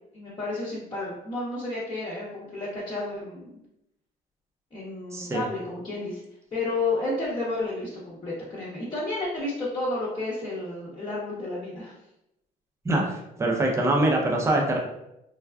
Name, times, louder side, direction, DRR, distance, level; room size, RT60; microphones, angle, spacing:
voice 1, 0.1-3.5 4.7-6.2 6.5-11.9, left 2 dB, 25° left, -8 dB, 0.8 m, -31 dB
voice 2, 5.1-5.4 12.8-14.8, right 1 dB, 15° right, 0 dB, 0.6 m, -24 dB
3.4 x 2.2 x 2.3 m, 0.83 s
cardioid pair, 110°, 17 cm